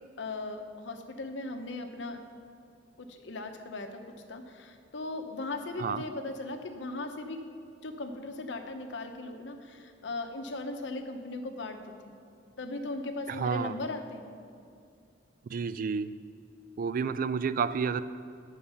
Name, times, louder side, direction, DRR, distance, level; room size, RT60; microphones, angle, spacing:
voice 1, 0.2-2.2 3.0-4.0 4.3-7.4 7.8-12.1 12.6-14.3, left 2 dB, 70° left, 6 dB, 0.8 m, -38 dB
voice 2, 13.3-13.8 15.4-16.1 16.8-18.0, right 6 dB, 50° right, 14 dB, 0.3 m, -30 dB
8.8 x 6.4 x 5.5 m, 2.3 s
head